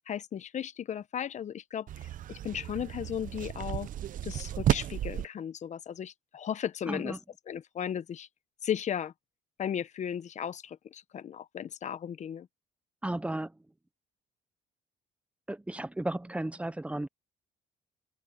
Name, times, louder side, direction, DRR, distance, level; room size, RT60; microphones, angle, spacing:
voice 1, 0.1-3.9 4.2-7.2 7.5-8.3 8.6-9.1 9.6-12.5, left 9 dB, 45° left, 0.9 m, -36 dB
sound 1, 1.9-5.3, right 11 dB, 50° right, 0.7 m, -33 dB
voice 2, 6.9-7.2 13.0-13.5 15.5-17.1, right 1 dB, 5° right, 0.7 m, -34 dB
cardioid pair, 110°, 17 cm